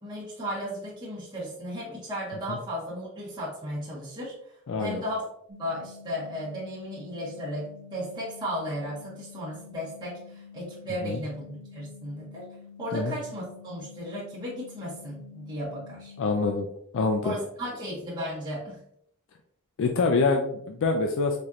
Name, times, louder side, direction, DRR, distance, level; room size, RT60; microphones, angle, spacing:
voice 1, 0.0-4.3 4.8-5.2 5.6-12.5 12.8-16.1 17.2-18.8, equal, 20° right, -8 dB, 1.3 m, -35 dB
voice 2, 4.7-5.0 11.0-11.2 12.9-13.1 16.2-16.7 16.9-17.3 19.8-21.4, left 3 dB, 55° left, 3 dB, 0.4 m, -25 dB
sound 1, 5.5-16.5, left 6 dB, 55° right, 1.1 m, -48 dB
4.2 x 3.1 x 2.4 m, 0.71 s
head